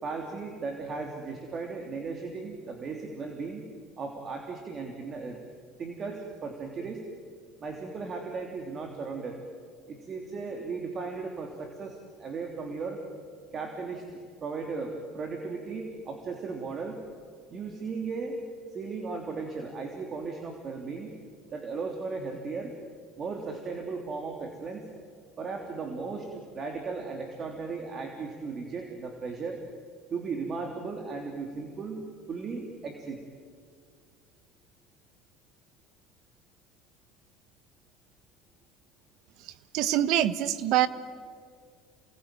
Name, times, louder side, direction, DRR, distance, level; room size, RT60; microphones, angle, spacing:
voice 1, 0.0-3.7 4.0-5.4 5.8-7.0 7.6-9.4 9.9-13.0 13.5-17.0 17.5-18.4 18.7-21.2 21.5-22.7 23.2-24.9 25.4-29.6 30.1-33.2, right 4 dB, 35° right, 3 dB, 3.3 m, -36 dB
voice 2, 39.7-40.9, right 12 dB, 65° right, 14 dB, 1.2 m, -24 dB
28.0 x 20.5 x 9.2 m, 2.2 s
supercardioid pair, 105°, 0 cm